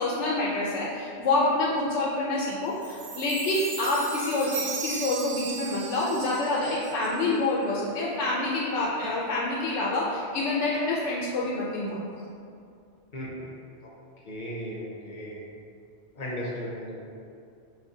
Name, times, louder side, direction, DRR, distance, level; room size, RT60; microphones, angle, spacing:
voice 1, 0.0-12.0, left 2 dB, 85° left, -6 dB, 0.9 m, -27 dB
Chime, 2.8-7.3, right 4 dB, 60° right, 0.7 m, -37 dB
voice 2, 13.1-13.5 13.8-13.9 14.3-15.4 16.2-17.0, equal, 50° left, -5 dB, 0.7 m, -36 dB
5.5 x 2.1 x 2.6 m, 2.4 s
omnidirectional pair, 1.2 m